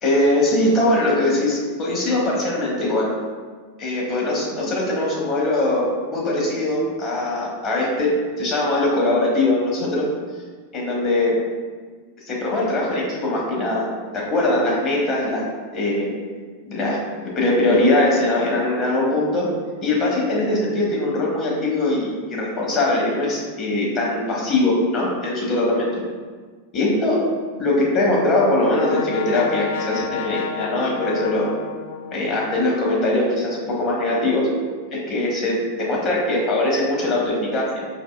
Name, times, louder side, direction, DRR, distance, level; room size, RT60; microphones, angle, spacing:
voice 1, 0.0-3.1 3.8-8.1 8.4-10.1 10.7-11.4 12.3-13.9 14.1-15.4 15.7-16.1 16.7-19.5 19.8-25.9 26.7-27.2 27.6-31.5 32.1-34.5 34.9-37.8, left 2 dB, 30° left, -4 dB, 1.0 m, -21 dB
Brass instrument, 27.8-32.6, left 8 dB, 50° left, 0.3 m, -31 dB
4.6 x 2.7 x 2.3 m, 1.5 s
figure-of-eight pair, 90°, 0 cm